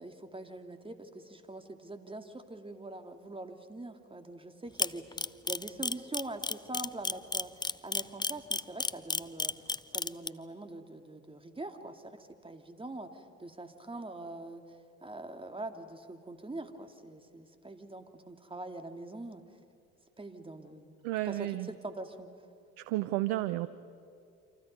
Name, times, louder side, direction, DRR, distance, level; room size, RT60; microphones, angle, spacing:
voice 1, 0.0-19.4 20.2-20.9 21.3-22.3, right 2 dB, 15° right, 7 dB, 2.5 m, -44 dB
Camera, 4.8-10.3, left 3 dB, 10° left, 0.7 m, -31 dB
voice 2, 21.0-21.7 22.8-23.7, right 16 dB, 70° right, 14 dB, 0.9 m, -32 dB
29.0 x 26.5 x 5.4 m, 2.6 s
hypercardioid pair, 65°, 40 cm